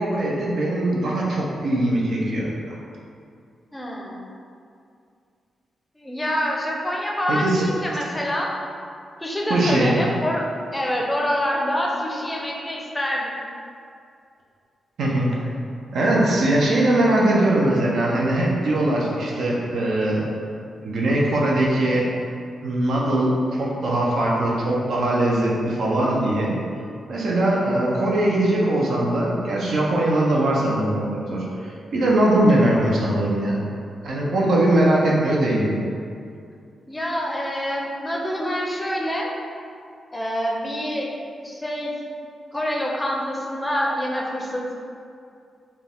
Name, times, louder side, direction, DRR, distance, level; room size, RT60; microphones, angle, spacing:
voice 1, 0.0-2.8 7.3-7.7 9.5-10.0 15.0-15.5 15.9-20.2 20.8-22.1 22.6-26.6 27.1-33.6 34.0-35.7, right 1 dB, 75° right, -4 dB, 0.7 m, -21 dB
voice 2, 3.7-4.2 6.0-8.5 9.2-10.4 10.7-13.4 36.9-39.3 40.1-41.1 41.4-41.9 42.5-44.7, equal, 10° left, -2 dB, 0.5 m, -26 dB
4.4 x 2.4 x 3.6 m, 2.4 s
wide cardioid pair, 140°, 0 cm